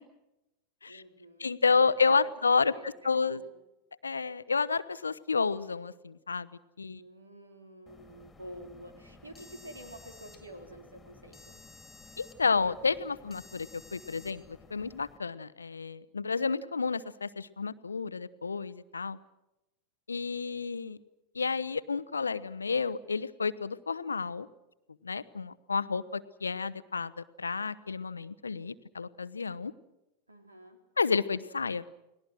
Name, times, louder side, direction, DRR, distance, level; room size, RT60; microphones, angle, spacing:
voice 1, 0.9-1.8 2.2-2.3 2.7-3.5 6.8-11.6 30.3-30.8, equal, 80° right, 6 dB, 3.6 m, -49 dB
voice 2, 1.4-2.7 3.0-3.4 4.0-6.5 6.8-7.0 12.2-19.2 20.1-21.0 21.3-24.5 25.0-29.7 31.0-31.8, left 4 dB, 75° left, 16 dB, 0.8 m, -30 dB
sound 1, 7.9-15.2, left 3 dB, 15° left, 2.6 m, -54 dB
29.5 x 19.5 x 6.2 m, 0.96 s
figure-of-eight pair, 90°, 0 cm